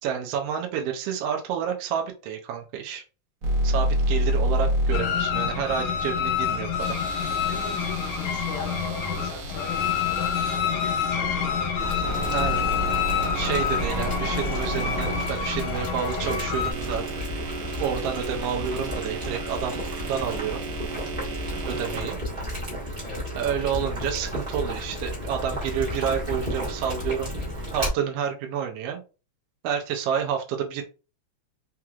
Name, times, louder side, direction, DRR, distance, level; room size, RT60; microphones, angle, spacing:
voice 1, 0.0-3.0 3.6-7.0 12.3-12.7 13.3-17.0 17.8-19.8 20.1-20.6 21.6-22.2 23.3-27.3 27.7-29.0 29.6-30.8, right 8 dB, 75° right, 3 dB, 1.5 m, -29 dB
sound 1, 3.4-5.8 6.8-10.6 11.6-15.9 16.5-22.0, right 1 dB, 60° right, 1.6 m, -30 dB
sound 2, 4.9-16.7, left 7 dB, 80° left, 2.0 m, -27 dB
voice 2, 7.5-12.5 23.0-23.3, left 4 dB, 55° left, -1 dB, 1.5 m, -41 dB
Boiling, 11.8-27.9, equal, 40° right, 0.8 m, -33 dB
4.7 x 3.0 x 2.3 m, 0.32 s
omnidirectional pair, 3.3 m